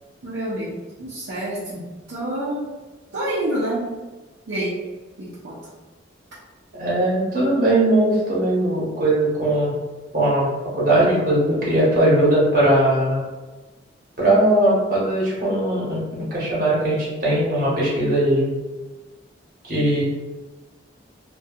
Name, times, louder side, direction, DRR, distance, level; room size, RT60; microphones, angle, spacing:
voice 1, 0.2-2.7 3.1-4.0 4.5-4.8 5.2-5.7 11.0-11.1, right 1 dB, 75° right, -9 dB, 0.6 m, -28 dB
voice 2, 6.7-9.7 10.1-13.2 14.2-18.5 19.7-20.0, right 1 dB, 50° right, -7 dB, 1.1 m, -19 dB
2.7 x 2.3 x 2.4 m, 1.2 s
head